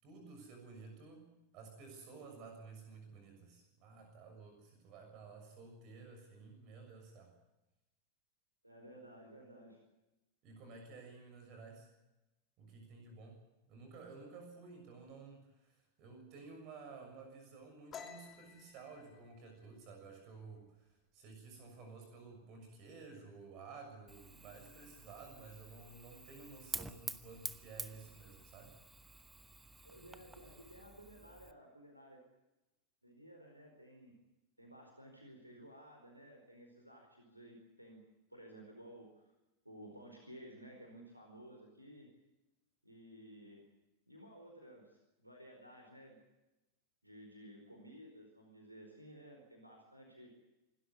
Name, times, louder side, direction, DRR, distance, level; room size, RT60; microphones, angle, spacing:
voice 1, 0.0-7.3 10.4-11.9 12.6-13.4 13.7-28.7, right 4 dB, 40° right, 4 dB, 6.8 m, -53 dB
voice 2, 8.6-9.8 29.8-32.2 33.0-34.1 34.6-38.0 38.3-39.2 39.6-42.1 42.8-43.7 44.1-46.2 47.0-50.3, right 1 dB, 85° right, 2 dB, 4.5 m, -55 dB
sound 1, 17.9-21.3 21.7-22.0 22.4-22.9 23.2-23.9, left 7 dB, 25° left, 3.0 m, -54 dB
Fire, 24.1-31.5, right 3 dB, 10° right, 1.1 m, -49 dB
27.0 x 13.0 x 9.7 m, 0.99 s
figure-of-eight pair, 90°, 0 cm